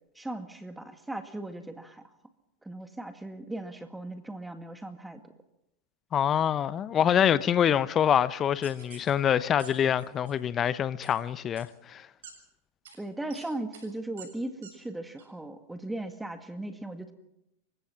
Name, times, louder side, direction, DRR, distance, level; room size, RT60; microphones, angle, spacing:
voice 1, 0.2-2.0 2.6-5.2 13.0-17.1, right 1 dB, 5° right, 2.0 m, -38 dB
voice 2, 6.1-12.1, left 9 dB, 30° left, 0.8 m, -25 dB
sound 1, 8.6-9.1 9.6-9.7 10.0-10.3 11.0-11.1 11.6-11.7 12.2-12.3 12.8-13.0 13.3-13.4 13.7-13.9 14.2-14.3 14.6-14.7 15.2-15.3, right 7 dB, 75° right, 7.1 m, -48 dB
28.0 x 16.0 x 5.9 m
hypercardioid pair, 100°, 0 cm